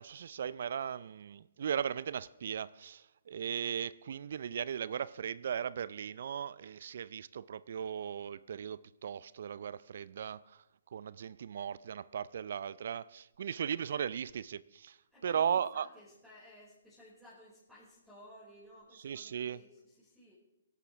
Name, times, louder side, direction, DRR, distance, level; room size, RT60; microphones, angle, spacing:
voice 1, 0.0-10.6 10.9-15.0 15.2-15.9 19.0-19.6, right 8 dB, 55° right, 0.5 m, -37 dB
voice 2, 15.1-20.3, left 1 dB, ahead, 5.3 m, -56 dB
22.5 x 11.5 x 3.5 m
figure-of-eight pair, 130°, 0 cm